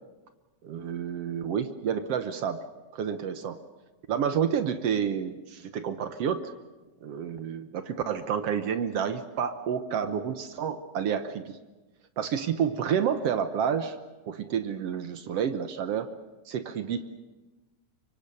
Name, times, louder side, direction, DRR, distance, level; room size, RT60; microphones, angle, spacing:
voice 1, 0.6-2.7 2.9-3.6 4.1-6.5 7.0-11.6 12.2-14.0 14.3-16.1 16.5-17.1, right 8 dB, 65° right, 10 dB, 1.8 m, -29 dB
25.0 x 24.0 x 6.8 m, 1.2 s
omnidirectional pair, 3.4 m